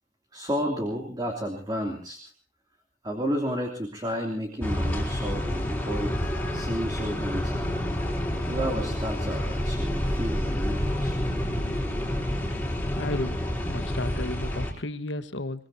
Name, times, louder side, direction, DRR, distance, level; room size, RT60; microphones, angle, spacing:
voice 1, 0.3-2.2 3.0-6.2 6.5-7.6 8.5-11.3, equal, 20° right, 1 dB, 2.9 m, -32 dB
sound 1, 4.6-14.7, equal, 10° left, 4.0 m, -28 dB
voice 2, 12.9-13.4 13.7-15.7, left 2 dB, 75° left, 10 dB, 1.4 m, -33 dB
23.5 x 21.5 x 2.8 m, 0.44 s
head